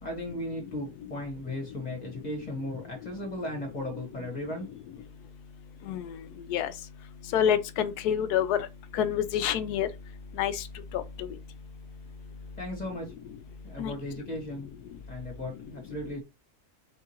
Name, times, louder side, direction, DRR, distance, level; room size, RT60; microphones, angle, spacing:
voice 1, 0.0-4.7 12.6-13.1 13.6-14.7 15.1-16.2, left 1 dB, 25° left, 1.8 m, -36 dB
voice 2, 7.3-8.6 8.9-9.9 10.4-10.5 10.9-11.0 13.8-13.9, left 9 dB, 90° left, 1.1 m, -26 dB
4.4 x 3.6 x 2.8 m
omnidirectional pair, 1.6 m